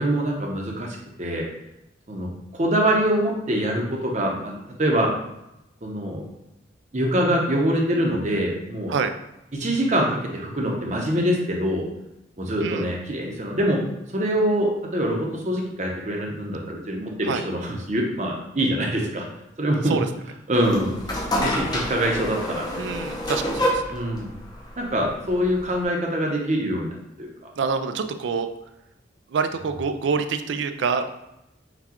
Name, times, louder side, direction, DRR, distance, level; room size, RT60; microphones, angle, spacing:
voice 1, 0.0-1.5 2.1-5.1 5.8-6.2 6.9-8.9 9.5-11.9 12.4-13.8 14.1-19.2 19.6-20.0 20.5-20.9 21.4-22.7 23.9-24.3 24.8-27.3, equal, 40° right, 0 dB, 0.7 m, -24 dB
sound 1, 20.6-25.8, equal, 20° left, 0.6 m, -28 dB
voice 2, 22.7-23.8 27.6-28.5 29.3-31.1, right 5 dB, 70° right, 8 dB, 0.3 m, -26 dB
5.9 x 2.3 x 2.9 m, 0.88 s
head